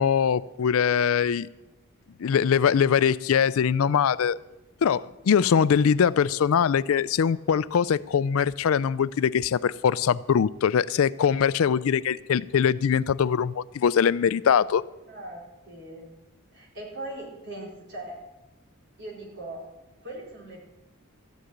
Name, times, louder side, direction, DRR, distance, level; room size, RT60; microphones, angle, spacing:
voice 1, 0.0-1.5 2.2-4.4 4.8-14.8, left 7 dB, 70° left, 18 dB, 0.4 m, -22 dB
voice 2, 15.1-16.1 16.5-18.1 19.0-19.6 20.0-20.6, right 1 dB, 55° right, -2 dB, 4.5 m, -39 dB
14.0 x 6.7 x 9.4 m, 0.99 s
head